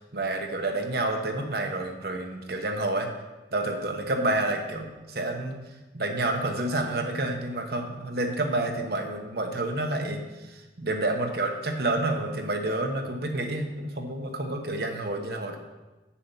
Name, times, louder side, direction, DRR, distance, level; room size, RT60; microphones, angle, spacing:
voice 1, 0.0-3.1 3.5-5.6 5.9-15.6, right 2 dB, 60° right, 3 dB, 1.1 m, -29 dB
8.6 x 7.1 x 5.6 m, 1.1 s
head